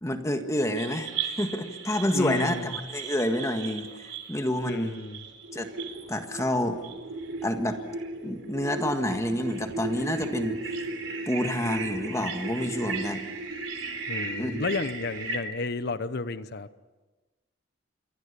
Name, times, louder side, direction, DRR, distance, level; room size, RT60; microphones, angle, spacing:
voice 1, 0.0-3.9 4.3-4.9 5.5-5.7 6.1-6.8 7.4-7.8 8.2-10.6 11.3-13.2 14.4-14.6, left 1 dB, 15° left, 6 dB, 1.7 m, -28 dB
sound 1, 0.8-15.4, right 3 dB, 75° right, 3.7 m, -36 dB
voice 2, 2.1-2.7 4.6-5.3 14.1-16.7, left 3 dB, 55° left, 14 dB, 0.9 m, -32 dB
28.5 x 23.0 x 6.9 m, 1.2 s
head